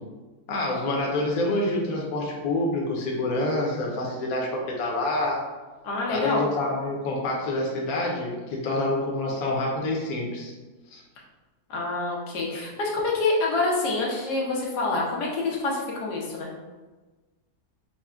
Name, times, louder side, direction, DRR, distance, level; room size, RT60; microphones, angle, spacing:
voice 1, 0.5-5.4 6.1-10.5 10.9-11.0, left 2 dB, 65° left, -2 dB, 1.1 m, -27 dB
voice 2, 5.8-6.4 11.7-16.5, left 3 dB, 90° left, -2 dB, 1.3 m, -26 dB
5.6 x 2.1 x 2.4 m, 1.2 s
omnidirectional pair, 1.7 m